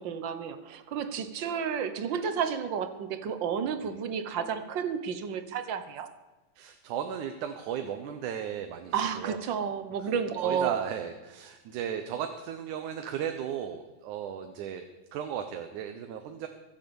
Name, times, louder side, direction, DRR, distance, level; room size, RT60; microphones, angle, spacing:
voice 1, 0.0-6.1 8.9-10.8, right 7 dB, 60° right, 10 dB, 1.3 m, -31 dB
voice 2, 6.6-9.4 10.0-10.1 10.4-14.8 15.1-16.5, right 9 dB, 85° right, 6 dB, 2.5 m, -35 dB
23.5 x 8.0 x 7.0 m, 1.2 s
omnidirectional pair, 3.4 m